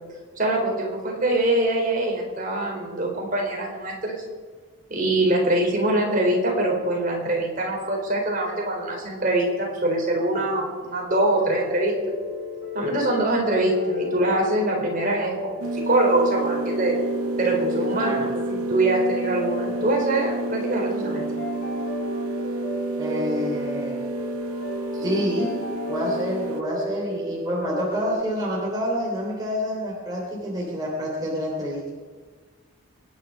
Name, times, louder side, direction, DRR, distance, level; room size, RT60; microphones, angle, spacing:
voice 1, 0.4-4.1 4.9-11.9 12.7-17.0 17.4-21.4, right 1 dB, 40° right, -1 dB, 4.4 m, -24 dB
sound 1, 11.1-28.2, left 1 dB, 50° left, 6.5 m, -32 dB
sound 2, 15.6-26.6, right 4 dB, 90° right, 0.7 m, -31 dB
voice 2, 17.7-18.3 23.0-24.0 24.9-25.6 25.9-31.9, equal, 20° right, -4 dB, 3.3 m, -28 dB
26.0 x 10.5 x 5.3 m, 1.5 s
head